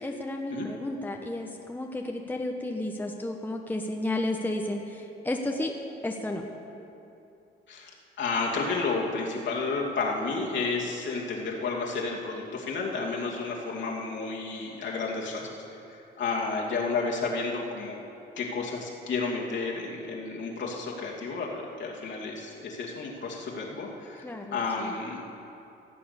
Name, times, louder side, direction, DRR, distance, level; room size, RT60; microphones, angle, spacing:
voice 1, 0.0-5.7 6.0-6.4 24.2-25.0, left 1 dB, 10° left, 2 dB, 1.1 m, -32 dB
voice 2, 8.2-15.6 15.9-18.0 18.4-25.2, left 4 dB, 65° left, -2 dB, 2.5 m, -31 dB
16.5 x 7.8 x 6.8 m, 2.8 s
cardioid pair, 90°, 20 cm